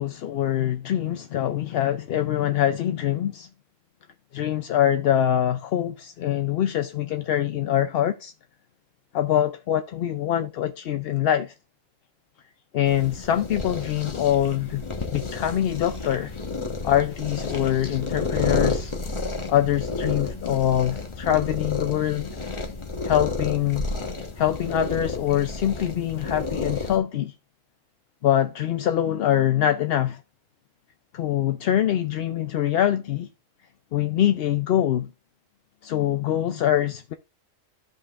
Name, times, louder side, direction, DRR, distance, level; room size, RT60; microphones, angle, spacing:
voice 1, 0.0-3.5 4.3-8.3 9.1-11.5 12.7-14.8 15.1-16.4 16.8-18.9 19.5-22.3 23.0-23.9 24.4-27.3 28.2-30.2 31.1-33.3 33.9-35.1 35.8-37.1, left 11 dB, 60° left, 0.7 m, -24 dB
sound 1, 12.8-27.0, left 3 dB, 25° left, 1.0 m, -31 dB
15.0 x 5.3 x 2.4 m
omnidirectional pair, 1.3 m